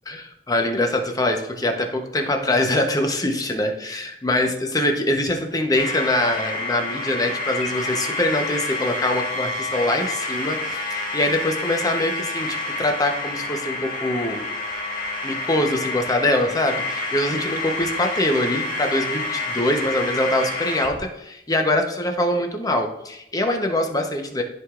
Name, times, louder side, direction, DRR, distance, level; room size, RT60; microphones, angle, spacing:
voice 1, 0.1-14.5 15.2-24.4, left 1 dB, 20° left, 3 dB, 0.9 m, -23 dB
sound 1, 5.7-21.0, left 2 dB, 50° left, 1.3 m, -28 dB
13.5 x 4.8 x 2.5 m, 0.83 s
head